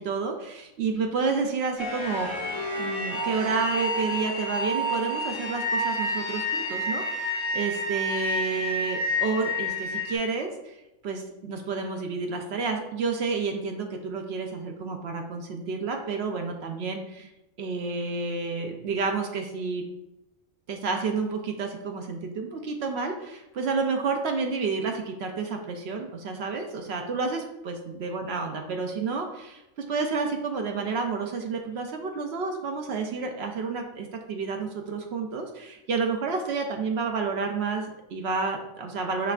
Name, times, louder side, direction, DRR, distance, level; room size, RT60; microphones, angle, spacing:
voice 1, 0.0-2.5 2.8-10.8 11.0-17.3 17.6-19.8 20.7-29.6 29.9-39.3, right 4 dB, 65° right, 3 dB, 0.6 m, -30 dB
sound 1, 1.8-10.2, left 1 dB, 20° left, 1.2 m, -29 dB
5.8 x 3.3 x 2.4 m, 0.92 s
omnidirectional pair, 1.5 m